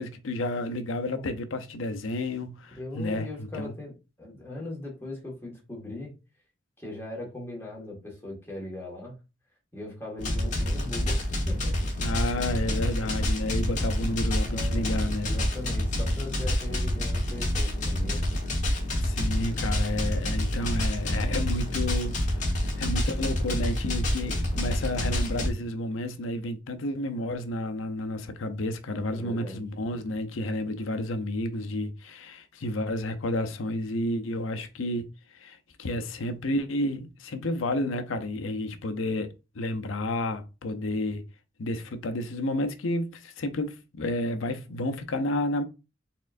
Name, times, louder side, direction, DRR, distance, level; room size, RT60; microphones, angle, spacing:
voice 1, 0.0-3.7 12.0-15.3 18.9-39.3 39.5-41.2 41.6-45.6, left 1 dB, 85° left, 0.6 m, -31 dB
voice 2, 2.8-3.9 4.2-6.1 6.8-9.2 9.7-11.7 14.4-18.2 29.1-29.7, left 1 dB, 10° left, 1.6 m, -39 dB
sound 1, 10.2-25.5, left 1 dB, 40° left, 1.3 m, -27 dB
4.2 x 3.7 x 2.5 m
head